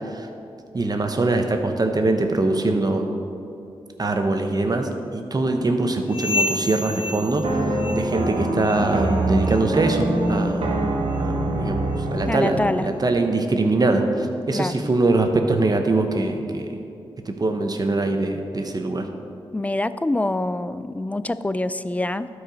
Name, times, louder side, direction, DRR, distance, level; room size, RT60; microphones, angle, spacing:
voice 1, 0.7-3.1 4.0-10.9 11.2-16.7 17.3-19.0, right 2 dB, 40° right, 5 dB, 1.0 m, -23 dB
sound 1, 6.1-8.3 8.6-9.0 9.4-9.7 10.3-10.4 11.1-11.2 11.9-12.0, left 2 dB, 60° left, 0.6 m, -30 dB
sound 2, 7.4-13.0, right 2 dB, 70° right, 1.2 m, -24 dB
voice 2, 12.3-12.9 14.5-14.8 19.5-22.3, left 2 dB, 15° left, 14 dB, 0.3 m, -25 dB
12.5 x 4.9 x 5.2 m, 2.6 s
cardioid pair, 65°, 10 cm